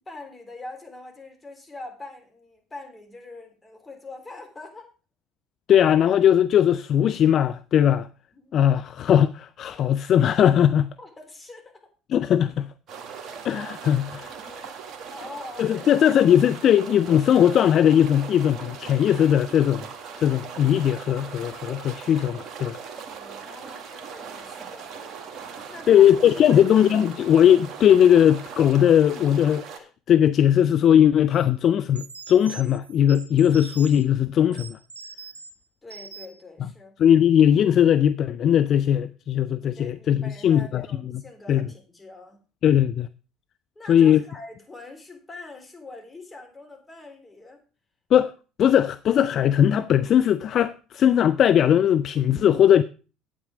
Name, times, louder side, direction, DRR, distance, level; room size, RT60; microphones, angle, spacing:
voice 1, 0.1-4.9 8.3-8.6 11.0-11.7 14.4-14.7 15.1-15.9 23.0-24.9 25.7-26.2 26.5-26.7 35.8-36.9 39.6-42.4 43.8-47.6, left 2 dB, 20° left, 3.7 m, -43 dB
voice 2, 5.7-8.1 8.5-10.9 12.1-12.7 13.4-14.4 15.6-19.9 20.2-22.8 25.9-34.8 37.0-40.9 41.5-41.6 42.6-43.1 43.9-44.2 48.1-48.3 48.6-52.8, left 9 dB, 50° left, 0.4 m, -19 dB
sound 1, 12.9-29.8, right 6 dB, 45° right, 1.9 m, -40 dB
sound 2, 31.3-31.5 32.0-34.1 34.5-35.5 35.9-36.4, right 5 dB, 85° right, 1.2 m, -42 dB
8.9 x 8.6 x 4.9 m
figure-of-eight pair, 60°, 0 cm